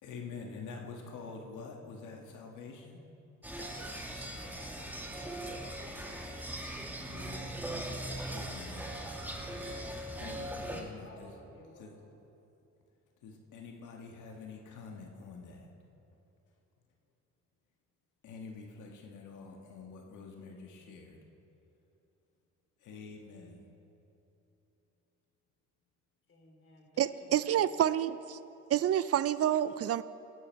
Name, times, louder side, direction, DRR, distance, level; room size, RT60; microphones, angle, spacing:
voice 1, 0.0-3.0 7.0-9.0 10.1-11.3 11.8-12.0 13.2-15.7 18.2-21.2 22.8-23.7, left 4 dB, 80° left, 1 dB, 1.8 m, -47 dB
sound 1, 3.4-10.8, right 1 dB, 5° right, 1.7 m, -40 dB
voice 2, 3.6-5.3 5.8-6.2 7.9-8.5 10.6-11.9 26.3-28.0, left 2 dB, 45° left, 0 dB, 3.6 m, -56 dB
voice 3, 27.0-28.1 28.7-30.0, right 11 dB, 55° right, 16 dB, 0.4 m, -28 dB
18.0 x 11.5 x 4.6 m, 2.9 s
cardioid pair, 90°, 30 cm